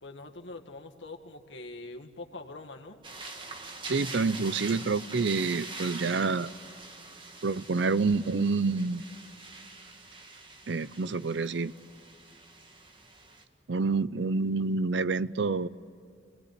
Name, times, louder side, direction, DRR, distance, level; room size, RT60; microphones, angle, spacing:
voice 1, 0.0-3.0, left 2 dB, 80° left, 3 dB, 1.9 m, -44 dB
sound 1, 3.0-13.4, right 3 dB, 25° right, 1.7 m, -44 dB
voice 2, 3.9-6.5 7.4-9.0 10.7-11.7 13.7-15.7, right 4 dB, 70° right, 16 dB, 0.6 m, -28 dB
26.5 x 19.0 x 9.5 m, 2.4 s
head